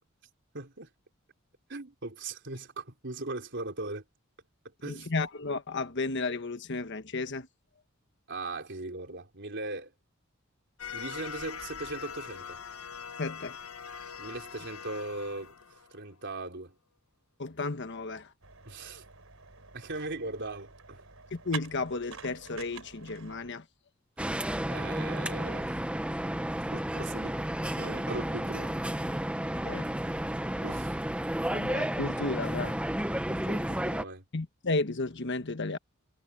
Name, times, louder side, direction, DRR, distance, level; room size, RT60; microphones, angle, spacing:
voice 1, 0.5-0.9 1.7-4.0 4.8-5.1 8.3-9.9 10.9-12.6 14.1-15.6 15.9-16.7 18.7-19.1 19.7-21.1 24.7-25.8 26.7-28.8 30.6-31.0 33.3-34.2, right 2 dB, 55° right, 3.9 m, -39 dB
voice 2, 4.8-7.5 13.2-13.6 17.4-18.3 21.3-23.6 29.6-29.9 31.5-32.7 34.3-35.8, left 3 dB, 60° left, 1.3 m, -33 dB
sound 1, 10.8-16.3, left 7 dB, 85° left, 1.3 m, -42 dB
sound 2, 18.4-23.5, right 6 dB, 75° right, 5.4 m, -47 dB
sound 3, 24.2-34.0, right 1 dB, 5° right, 1.0 m, -32 dB
head